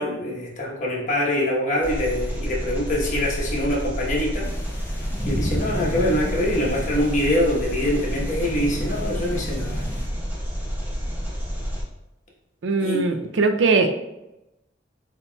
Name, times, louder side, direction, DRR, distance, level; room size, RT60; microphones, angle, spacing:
voice 1, 0.0-4.5 5.2-9.8 12.8-13.1, left 1 dB, 45° left, -3 dB, 1.1 m, -24 dB
Engine, 1.8-11.8, equal, 10° right, 1.0 m, -29 dB
sound 1, 4.4-10.1, equal, 15° left, 0.5 m, -33 dB
voice 2, 12.6-13.9, right 3 dB, 90° right, 7 dB, 0.5 m, -20 dB
7.7 x 2.9 x 2.3 m, 0.94 s
head